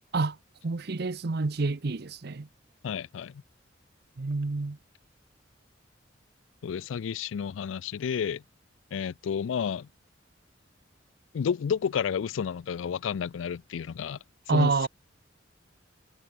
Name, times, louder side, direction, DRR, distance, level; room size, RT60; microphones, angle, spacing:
voice 1, 0.6-2.5 4.2-4.8 14.5-14.9, right 3 dB, 55° right, 0.7 m, -28 dB
voice 2, 2.8-3.4 6.6-8.4 8.9-9.9 11.3-14.2 14.5-14.9, left 7 dB, 85° left, 0.4 m, -31 dB
head